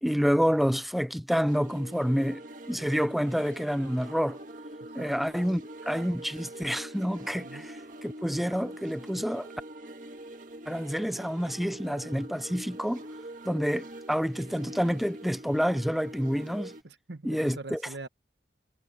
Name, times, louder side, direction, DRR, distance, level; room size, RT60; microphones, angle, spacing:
voice 1, 0.0-4.4 4.9-9.5 10.7-13.0 13.4-16.7 17.2-17.8, equal, ahead, 0.5 m, -28 dB
sound 1, 1.5-16.8, right 1 dB, 45° right, 2.0 m, -44 dB
voice 2, 5.0-5.3 7.4-7.7 16.8-18.1, right 2 dB, 85° right, 1.3 m, -43 dB
head